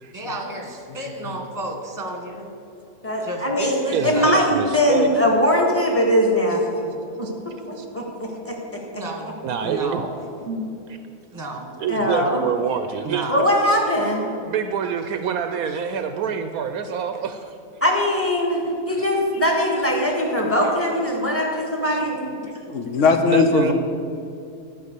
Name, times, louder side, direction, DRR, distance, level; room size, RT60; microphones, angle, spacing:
voice 1, 0.1-2.5 3.2-4.5 8.9-10.1 11.3-11.7 13.0-13.4 19.9-20.0 20.6-20.7 21.5-21.6 22.4-22.5, right 1 dB, 15° right, 2 dB, 1.3 m, -32 dB
voice 2, 3.0-6.9 7.2-7.3 7.7-8.8 10.5-10.6 11.9-12.5 13.3-14.3 17.8-18.6 18.9-22.2, equal, 10° left, -1 dB, 1.6 m, -21 dB
voice 3, 3.9-5.1 7.2-7.3 7.7-7.9 9.4-10.0 11.8-13.3 14.4-17.6 21.9-22.0 23.2-23.7, right 7 dB, 75° right, 8 dB, 1.0 m, -26 dB
voice 4, 22.7-23.7, left 4 dB, 60° left, 6 dB, 1.0 m, -18 dB
12.0 x 5.3 x 8.1 m, 2.6 s
omnidirectional pair, 1.7 m